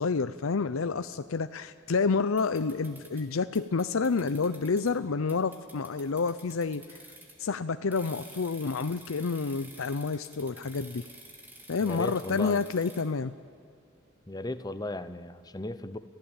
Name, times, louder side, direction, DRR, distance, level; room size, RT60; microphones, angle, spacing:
voice 1, 0.0-7.0 7.4-11.0 11.7-13.3, left 4 dB, 85° left, 11 dB, 0.6 m, -29 dB
sound 1, 2.4-3.2 3.5-4.9 5.3-7.5 7.9-13.0, right 1 dB, 10° right, 3.0 m, -50 dB
voice 2, 11.8-12.6 14.3-16.0, left 1 dB, 20° left, 12 dB, 0.8 m, -36 dB
29.5 x 15.5 x 9.0 m, 2.3 s
head